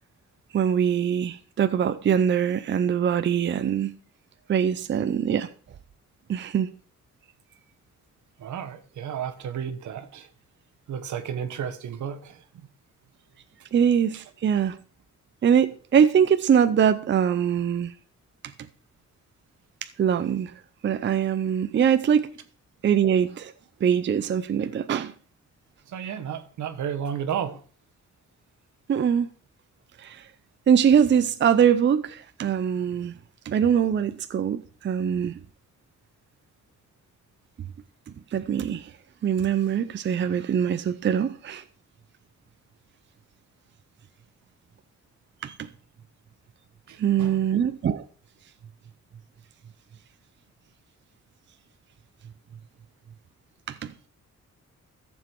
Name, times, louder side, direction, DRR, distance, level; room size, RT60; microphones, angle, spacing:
voice 1, 0.5-3.9 4.5-5.5 6.3-6.7 13.7-14.8 15.4-17.9 19.8-20.5 20.8-22.3 22.8-23.5 23.8-25.1 28.9-29.3 30.0-30.2 30.7-33.1 33.5-35.3 38.3-38.9 39.2-41.6 45.4-45.7 47.0-48.0 53.7-53.9, right 8 dB, 40° right, 0.6 m, -23 dB
voice 2, 8.4-10.3 10.9-12.4 25.9-27.6 45.5-45.6 46.9-47.4, right 8 dB, 80° right, 1.3 m, -33 dB
14.5 x 7.3 x 4.5 m
wide cardioid pair, 170°, 29 cm